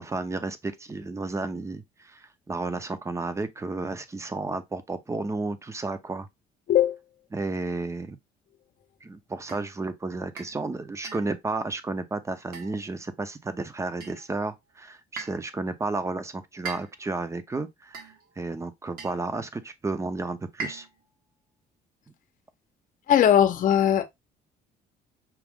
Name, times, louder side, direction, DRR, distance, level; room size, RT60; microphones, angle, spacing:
voice 1, 0.0-6.3 7.3-8.2 9.0-20.9, right 3 dB, 15° right, 0.7 m, -32 dB
sound 1, 9.5-9.7 10.4-10.6 11.0-11.4 12.5-13.0 14.0-14.4 15.2-15.5 16.7-17.2 17.9-18.3 19.0-19.3 20.6-21.1, right 4 dB, 60° right, 1.5 m, -40 dB
voice 2, 23.1-24.2, left 10 dB, 50° left, 0.8 m, -20 dB
6.0 x 2.4 x 3.6 m
cardioid pair, 110°, 17 cm